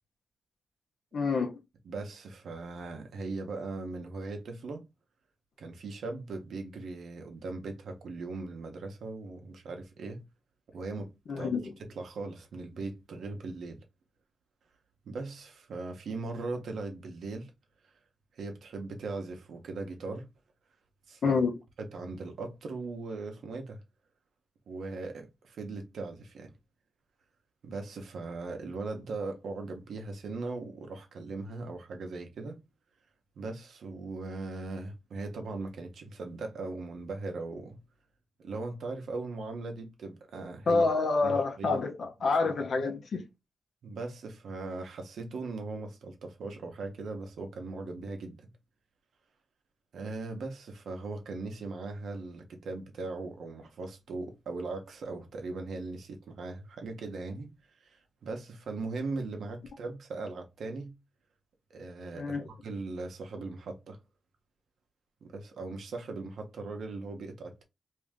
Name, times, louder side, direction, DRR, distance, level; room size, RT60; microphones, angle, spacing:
voice 1, 1.1-1.6 11.3-11.7 21.2-21.5 40.7-43.3 62.1-62.4, left 4 dB, 70° left, 0.7 m, -27 dB
voice 2, 1.9-4.8 5.6-10.2 10.7-11.1 11.4-11.5 11.8-13.8 15.0-17.5 18.4-20.3 21.1-21.4 21.8-23.8 24.7-26.5 27.6-32.6 33.4-37.8 38.4-40.9 41.2-41.8 42.4-42.9 43.8-48.5 49.9-57.5 57.8-60.9 61.7-64.0 65.2-67.6, right 3 dB, 85° right, 0.8 m, -39 dB
2.7 x 2.6 x 3.4 m
cardioid pair, 80°, 0 cm